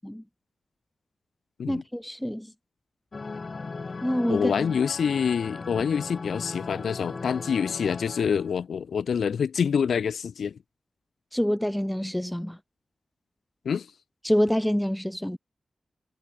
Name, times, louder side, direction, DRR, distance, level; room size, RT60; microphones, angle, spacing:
voice 1, 1.7-2.5 4.0-4.5 11.3-12.6 14.2-15.4, equal, 5° left, 0.5 m, -26 dB
sound 1, 3.1-8.5, left 4 dB, 35° left, 2.8 m, -38 dB
voice 2, 4.3-10.6 13.6-13.9, left 7 dB, 90° left, 1.6 m, -26 dB
wide cardioid pair, 165°, 0 cm